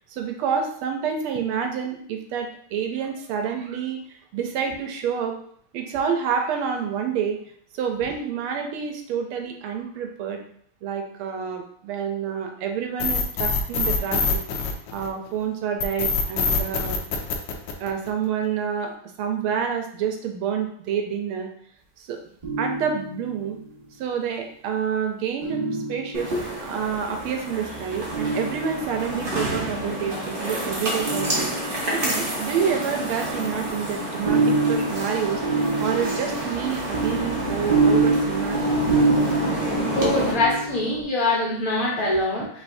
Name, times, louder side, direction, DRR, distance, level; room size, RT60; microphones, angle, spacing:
voice 1, 0.1-5.3 5.7-7.4 7.7-10.4 10.8-14.4 14.9-17.1 17.8-18.9 19.2-21.5 22.0-22.2 22.6-23.6 24.0-25.6 25.9-26.3 26.6-31.5 31.9-35.4 35.8-38.7, right 7 dB, 85° right, 4 dB, 1.6 m, -28 dB
sound 1, 13.0-15.3 15.8-18.2, left 5 dB, 85° left, 1.5 m, -24 dB
sound 2, 22.4-23.5 25.4-26.5 28.1-29.2 31.0-32.0 33.7-41.0, right 3 dB, 25° right, 1.2 m, -25 dB
sound 3, 26.1-40.3, right 1 dB, 60° right, 0.5 m, -29 dB
voice 2, 39.9-42.6, left 2 dB, 50° left, -4 dB, 1.2 m, -24 dB
5.4 x 3.2 x 2.6 m, 0.62 s
omnidirectional pair, 2.4 m